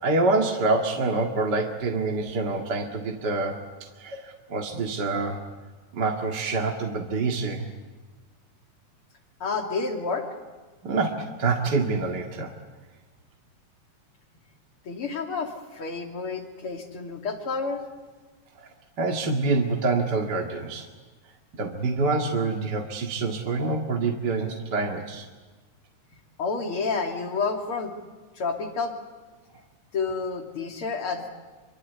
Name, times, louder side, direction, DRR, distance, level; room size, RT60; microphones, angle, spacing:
voice 1, 0.0-5.4 5.9-7.7 10.8-12.5 18.6-18.7 19.0-20.9 21.6-25.2, right 3 dB, 40° right, 1 dB, 2.3 m, -26 dB
voice 2, 9.4-10.3 14.9-17.8 26.4-27.9 28.4-28.9 29.9-31.3, left 4 dB, 45° left, 3 dB, 3.6 m, -29 dB
27.0 x 24.5 x 8.3 m, 1.4 s
omnidirectional pair, 3.4 m